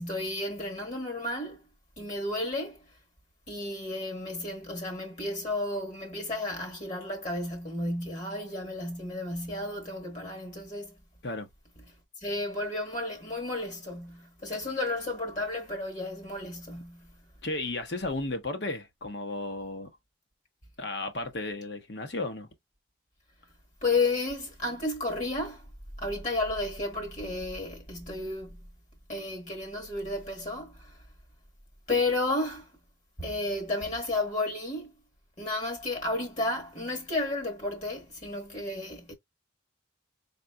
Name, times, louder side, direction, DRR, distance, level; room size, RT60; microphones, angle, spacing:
voice 1, 0.0-1.6 2.0-2.8 3.5-10.9 12.2-17.1 23.8-25.7 26.0-28.6 29.1-31.0 31.9-32.7 33.2-34.9 35.4-39.1, left 2 dB, 40° left, 1.2 m, -32 dB
voice 2, 17.4-19.9 20.8-22.5, left 2 dB, 60° left, 1.0 m, -34 dB
4.2 x 3.8 x 2.2 m
head